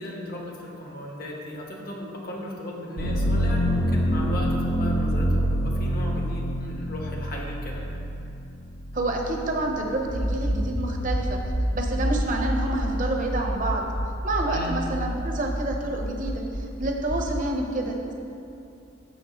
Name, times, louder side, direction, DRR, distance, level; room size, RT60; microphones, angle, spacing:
voice 1, 0.0-8.0 14.5-14.7, equal, 50° left, -1 dB, 1.0 m, -36 dB
sound 1, 3.0-10.8 11.3-12.1, equal, 75° left, 1.0 m, -27 dB
voice 2, 8.9-11.4 11.7-13.8 14.2-18.1, right 2 dB, 40° right, 1 dB, 0.8 m, -28 dB
Accelerating revving vroom, 10.1-17.4, equal, 20° left, 0.6 m, -29 dB
7.2 x 6.5 x 3.6 m, 2.7 s
head